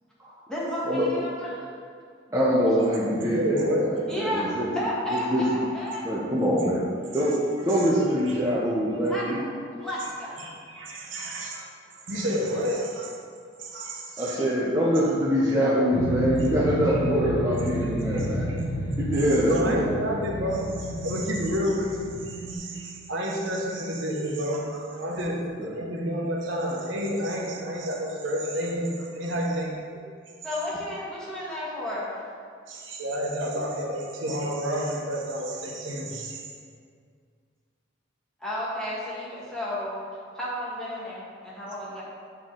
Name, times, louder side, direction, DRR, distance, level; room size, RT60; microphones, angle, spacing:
voice 1, 0.5-1.6 2.9-3.0 4.1-4.4 4.7-6.0 9.1-10.4 11.2-11.6 24.7-24.8 25.0-25.2 30.4-32.1 38.4-40.0 40.3-42.0, left 1 dB, 5° left, -8 dB, 1.5 m, -32 dB
voice 2, 2.3-4.7 5.1-5.4 6.0-6.8 7.1-7.4 7.6-9.4 14.2-18.4 19.0-19.8 25.6-25.7, equal, 15° right, -8 dB, 0.8 m, -24 dB
voice 3, 3.3-4.0 7.1-7.3 7.7-7.9 8.3-8.4 10.4-11.6 11.9-13.1 13.6-14.4 18.1-18.6 19.4-25.4 25.8-30.0 32.7-36.4, equal, 75° right, -2 dB, 1.0 m, -30 dB
sound 1, 15.9-22.6, equal, 50° left, 0.9 m, -31 dB
7.5 x 4.6 x 3.8 m, 2.1 s
head